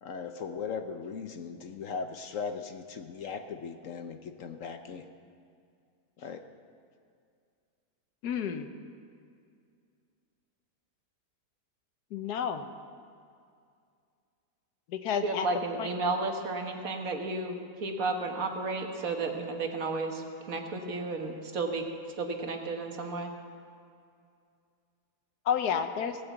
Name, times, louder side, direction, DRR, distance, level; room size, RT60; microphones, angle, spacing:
voice 1, 0.0-5.1 6.2-6.4, left 5 dB, 60° left, 7 dB, 1.0 m, -38 dB
voice 2, 8.2-8.7 12.1-12.6 14.9-15.5 15.8-15.9 25.5-26.2, left 8 dB, 80° left, 9 dB, 1.4 m, -30 dB
voice 3, 15.2-21.8 22.2-23.3, right 3 dB, 60° right, 4 dB, 1.7 m, -33 dB
16.5 x 9.0 x 8.2 m, 2.3 s
omnidirectional pair, 1.7 m